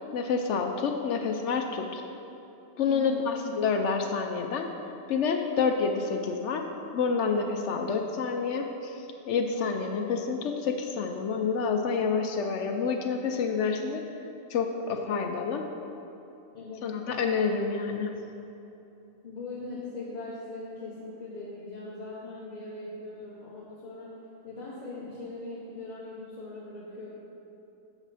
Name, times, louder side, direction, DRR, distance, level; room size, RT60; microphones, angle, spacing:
voice 1, 0.1-2.0 2.8-4.7 5.1-6.7 6.9-14.0 14.5-15.6 16.8-18.1, left 5 dB, 70° left, 5 dB, 0.8 m, -28 dB
voice 2, 2.9-3.3 16.5-16.9 19.2-24.1 24.4-27.1, left 2 dB, 35° left, -7 dB, 1.0 m, -40 dB
8.0 x 7.0 x 4.1 m, 2.9 s
omnidirectional pair, 1.4 m